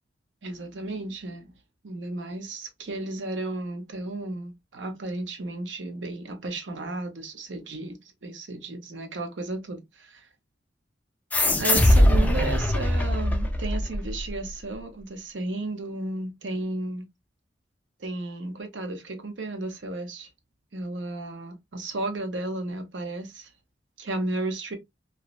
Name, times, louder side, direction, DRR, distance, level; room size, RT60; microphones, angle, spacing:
voice 1, 0.4-1.5 1.8-10.3 11.6-17.1 18.0-20.3 20.7-23.5 24.0-24.8, right 2 dB, 85° right, 0.7 m, -33 dB
sound 1, 11.3-14.4, left 1 dB, 10° left, 0.3 m, -21 dB
2.6 x 2.0 x 2.3 m
head